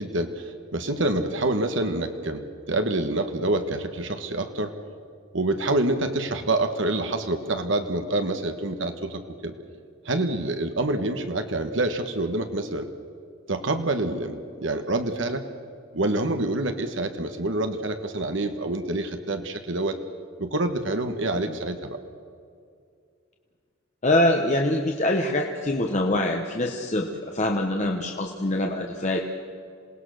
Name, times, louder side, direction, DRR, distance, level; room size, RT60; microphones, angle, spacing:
voice 1, 0.0-4.7 5.3-9.5 10.0-12.9 13.5-15.4 15.9-20.0 20.4-22.0, right 2 dB, 60° right, 7 dB, 1.4 m, -27 dB
voice 2, 24.0-29.2, left 1 dB, 35° left, 1 dB, 1.2 m, -24 dB
27.0 x 18.5 x 6.5 m, 2.3 s
head